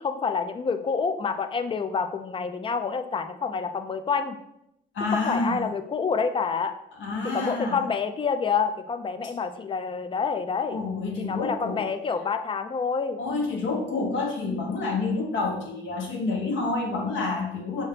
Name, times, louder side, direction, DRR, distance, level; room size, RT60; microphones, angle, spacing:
voice 1, 0.0-4.4 5.1-6.7 7.2-10.8 11.2-13.2, left 5 dB, 25° left, 9 dB, 0.4 m, -28 dB
voice 2, 4.9-5.6 7.0-7.8 10.7-11.8 13.2-17.9, left 3 dB, 75° left, 1 dB, 1.1 m, -28 dB
5.7 x 2.8 x 3.3 m, 0.82 s
cardioid pair, 90°, 20 cm